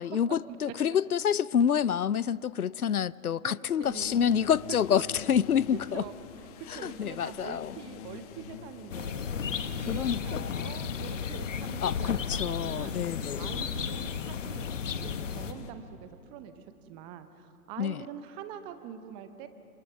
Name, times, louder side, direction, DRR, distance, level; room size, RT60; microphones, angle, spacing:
voice 1, 0.0-6.0 6.7-7.7 9.9-10.8 11.8-13.5 17.8-18.0, left 8 dB, 85° left, 0.6 m, -28 dB
voice 2, 3.4-4.2 4.7-5.1 5.9-6.2 6.7-9.3 9.6-13.0 13.4-19.5, right 9 dB, 10° right, 0.6 m, -44 dB
sound 1, 3.8-15.7, left 8 dB, 25° left, 1.3 m, -46 dB
sound 2, 8.9-15.5, left 7 dB, 60° left, 1.4 m, -34 dB
27.5 x 24.5 x 6.0 m
figure-of-eight pair, 130°, 43 cm